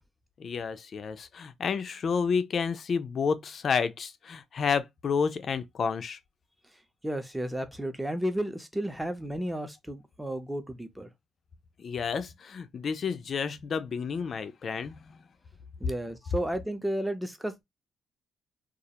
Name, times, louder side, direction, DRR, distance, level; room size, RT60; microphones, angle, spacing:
voice 1, 0.4-6.2 11.8-15.0, left 6 dB, 50° left, 0.3 m, -30 dB
voice 2, 7.0-11.1 15.8-17.6, right 1 dB, 5° right, 0.5 m, -33 dB
2.3 x 2.1 x 2.8 m
cardioid pair, 90°, 0 cm